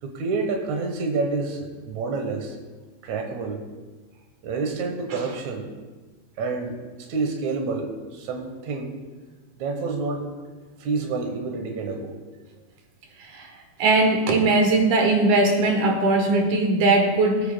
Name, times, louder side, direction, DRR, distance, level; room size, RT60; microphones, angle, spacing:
voice 1, 0.0-2.6 3.0-3.6 4.4-5.7 6.3-8.9 9.6-10.3 10.8-12.1, right 4 dB, 85° right, 3 dB, 1.6 m, -28 dB
voice 2, 13.8-17.5, right 2 dB, 70° right, 3 dB, 2.0 m, -20 dB
21.0 x 8.4 x 2.2 m, 1.3 s
omnidirectional pair, 4.9 m